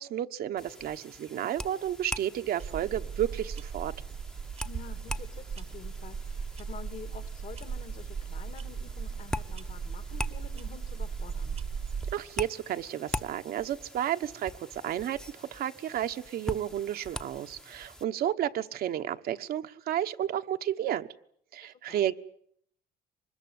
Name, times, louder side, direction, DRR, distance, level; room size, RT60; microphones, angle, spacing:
voice 1, 0.0-3.9 12.1-21.1 21.5-22.1, right 11 dB, 65° right, 1.2 m, -32 dB
sound 1, 0.6-18.0, left 1 dB, 5° left, 1.0 m, -43 dB
sound 2, 2.6-12.1, right 6 dB, 40° right, 1.1 m, -37 dB
voice 2, 4.6-11.6 21.6-22.1, left 7 dB, 50° left, 2.2 m, -48 dB
24.5 x 21.0 x 9.4 m
cardioid pair, 110°, 17 cm